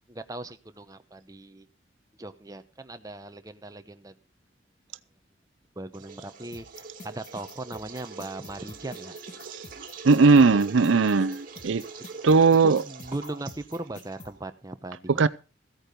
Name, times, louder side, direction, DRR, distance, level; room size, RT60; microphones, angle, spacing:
voice 1, 0.1-1.7 2.2-4.1 5.8-9.1 12.6-15.3, right 2 dB, 20° right, 0.9 m, -38 dB
sound 1, 5.9-14.5, right 5 dB, 50° right, 2.0 m, -44 dB
sound 2, 6.5-14.3, left 2 dB, 40° left, 1.9 m, -47 dB
voice 2, 10.0-11.8 12.2-12.8 15.2-15.3, right 4 dB, 85° right, 0.6 m, -18 dB
15.0 x 8.9 x 5.2 m
head